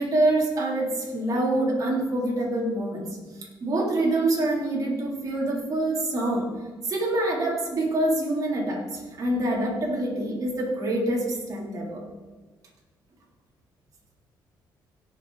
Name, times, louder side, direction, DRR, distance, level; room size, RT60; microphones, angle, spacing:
voice 1, 0.0-6.5 6.8-12.0, right 1 dB, 45° right, -3 dB, 3.5 m, -26 dB
17.0 x 6.4 x 4.9 m, 1.4 s
cardioid pair, 115°, 8 cm